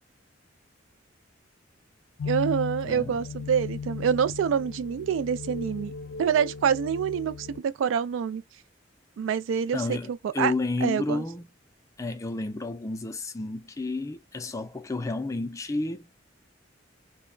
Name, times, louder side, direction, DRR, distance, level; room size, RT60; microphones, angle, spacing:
sound 1, 2.2-7.6, left 5 dB, 90° left, 0.4 m, -36 dB
voice 1, 2.2-5.9 6.2-8.4 9.2-10.5 10.8-11.2, right 7 dB, 85° right, 0.3 m, -26 dB
voice 2, 2.8-3.2 9.7-11.5 12.0-16.1, left 3 dB, 15° left, 0.3 m, -31 dB
2.2 x 2.0 x 3.7 m
head